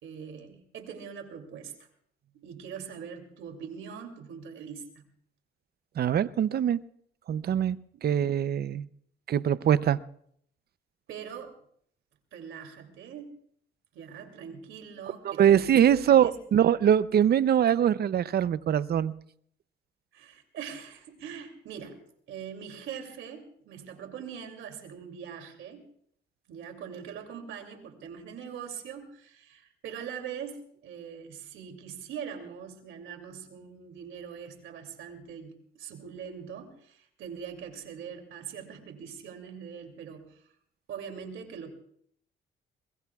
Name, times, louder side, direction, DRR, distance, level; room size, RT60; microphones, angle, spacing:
voice 1, 0.0-1.7 2.3-5.0 7.9-8.3 11.1-11.5 12.3-13.3 13.9-16.4 20.1-22.0 22.3-25.9 26.5-40.4 40.9-41.7, right 7 dB, 85° right, 5 dB, 2.8 m, -42 dB
voice 2, 6.0-6.8 7.3-8.8 9.3-10.0 15.2-19.1, right 9 dB, 55° right, 16 dB, 0.6 m, -23 dB
22.0 x 21.5 x 2.4 m, 0.66 s
cardioid pair, 90°, 20 cm